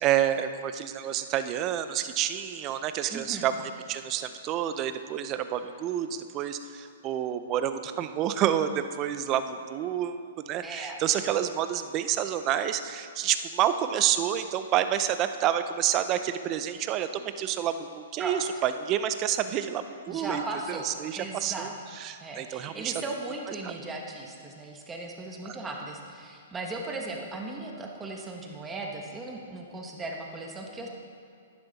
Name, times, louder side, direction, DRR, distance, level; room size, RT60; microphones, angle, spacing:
voice 1, 0.0-20.4 20.7-21.7 22.0-22.9 23.6-23.7 25.5-25.6, right 10 dB, 30° right, 10 dB, 0.6 m, -29 dB
voice 2, 3.1-3.5 10.6-11.0 18.2-18.4 20.1-20.9 21.2-21.7 22.2-30.9, right 2 dB, 15° right, 0 dB, 1.3 m, -37 dB
11.5 x 10.5 x 4.2 m, 2.3 s
hypercardioid pair, 140°, 0 cm